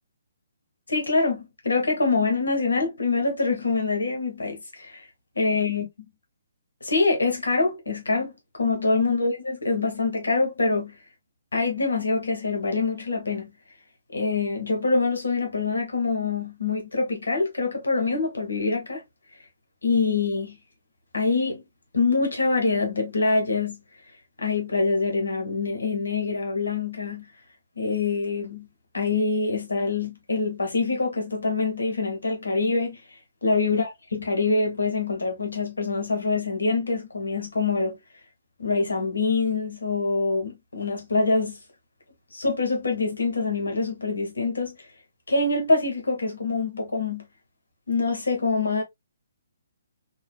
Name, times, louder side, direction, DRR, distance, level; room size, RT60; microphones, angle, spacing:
voice 1, 0.9-5.0 5.3-5.9 6.8-10.9 11.5-13.5 14.1-19.0 19.8-20.5 21.1-21.6 21.9-23.8 24.4-27.3 27.8-28.7 28.9-33.0 33.4-38.0 38.6-41.6 42.3-44.7 45.3-47.2 47.9-48.8, left 3 dB, 65° left, 1.3 m, -25 dB
3.9 x 2.4 x 2.2 m
figure-of-eight pair, 130°, 0 cm